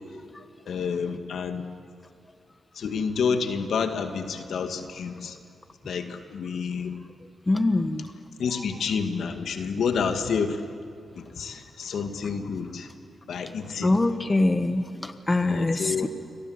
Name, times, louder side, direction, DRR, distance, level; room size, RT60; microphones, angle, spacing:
voice 1, 0.7-1.6 2.8-5.4 5.8-7.0 8.4-10.6 11.1-12.9 13.3-14.0 15.3-16.1, left 6 dB, 75° left, 6 dB, 2.1 m, -29 dB
voice 2, 7.5-8.1 13.8-16.1, left 2 dB, 25° left, 9 dB, 1.4 m, -24 dB
29.0 x 24.0 x 8.1 m, 2.4 s
cardioid pair, 70°, 0 cm